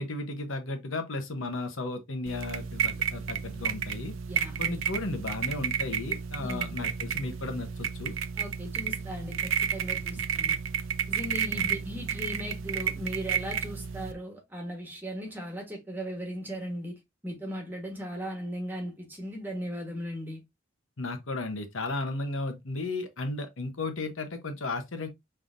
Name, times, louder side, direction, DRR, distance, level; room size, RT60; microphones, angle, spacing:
voice 1, 0.0-4.1 4.6-8.1 11.5-11.8 21.0-25.1, left 2 dB, 80° left, 1.1 m, -34 dB
sound 1, 2.3-14.1, right 7 dB, 85° right, 0.6 m, -31 dB
voice 2, 6.4-6.8 8.4-10.6 11.1-16.9 17.2-20.4, equal, 10° right, 1.4 m, -37 dB
5.5 x 3.4 x 2.6 m
head